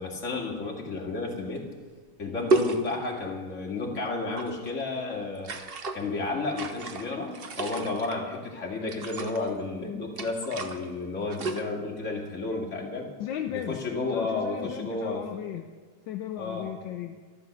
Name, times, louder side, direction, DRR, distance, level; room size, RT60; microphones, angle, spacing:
voice 1, 0.0-1.6 2.2-5.5 5.9-13.1 13.5-15.3 16.4-16.7, left 3 dB, 35° left, -1 dB, 2.5 m, -32 dB
sound 1, 1.6-1.7 2.5-3.2 4.2-4.7 5.4-6.0 6.5-8.2 8.9-9.5 10.2-10.9 11.2-11.6, right 3 dB, 50° right, 0.6 m, -31 dB
voice 2, 13.2-13.8 14.1-15.6 16.1-17.2, left 10 dB, 75° left, 6 dB, 1.3 m, -35 dB
13.0 x 12.0 x 6.3 m, 1.5 s
omnidirectional pair, 2.3 m